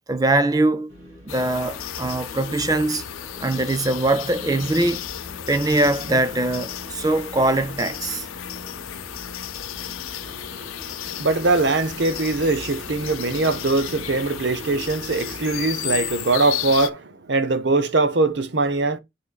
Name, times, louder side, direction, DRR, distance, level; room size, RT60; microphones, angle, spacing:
voice 1, 0.1-0.9 1.2-3.0 3.4-5.0 5.5-8.3, right 2 dB, 20° right, 0.4 m, -22 dB
sound 1, 0.9-16.1, equal, 80° right, 2.9 m, -43 dB
sound 2, 1.3-16.9, left 10 dB, 85° left, 0.6 m, -34 dB
voice 2, 10.3-19.0, right 3 dB, 55° right, 0.7 m, -22 dB
11.0 x 4.8 x 2.3 m
head